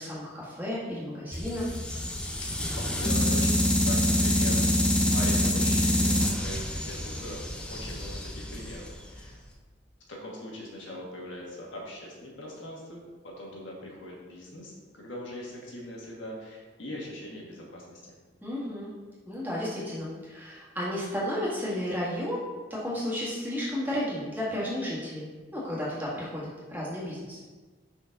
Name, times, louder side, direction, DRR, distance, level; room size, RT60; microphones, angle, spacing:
voice 1, 0.0-1.7 18.4-18.9 19.2-22.4 22.7-25.3 25.5-27.4, left 1 dB, 10° right, -8 dB, 1.7 m, -33 dB
sound 1, 1.3-9.4, left 1 dB, 5° left, 0.4 m, -26 dB
voice 2, 2.7-7.4 7.7-9.4 10.1-18.0, left 1 dB, 80° left, -3 dB, 1.5 m, -41 dB
5.6 x 4.3 x 3.9 m, 1.3 s
head